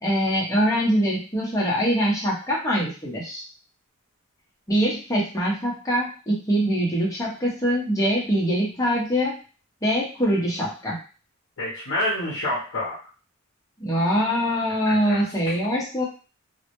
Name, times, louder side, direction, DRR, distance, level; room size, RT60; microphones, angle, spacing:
voice 1, 0.0-3.4 4.7-9.4 9.8-11.0 13.8-16.0, equal, 15° left, -4 dB, 0.7 m, -23 dB
voice 2, 11.6-13.0 14.8-15.2, left 1 dB, 65° left, -5 dB, 0.6 m, -27 dB
2.1 x 2.0 x 2.9 m, 0.36 s
head